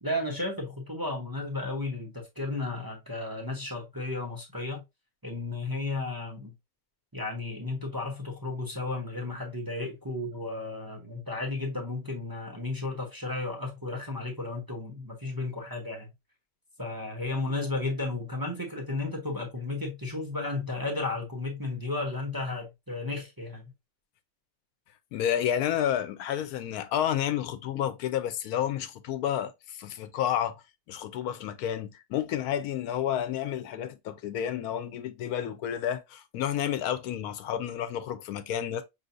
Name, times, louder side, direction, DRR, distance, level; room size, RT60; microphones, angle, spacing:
voice 1, 0.0-4.8 5.2-6.5 7.1-16.1 16.8-23.7, left 2 dB, 20° right, 0.7 m, -33 dB
voice 2, 25.1-30.5 30.9-38.8, left 10 dB, 90° left, 1.1 m, -30 dB
5.5 x 3.0 x 2.5 m
omnidirectional pair, 1.5 m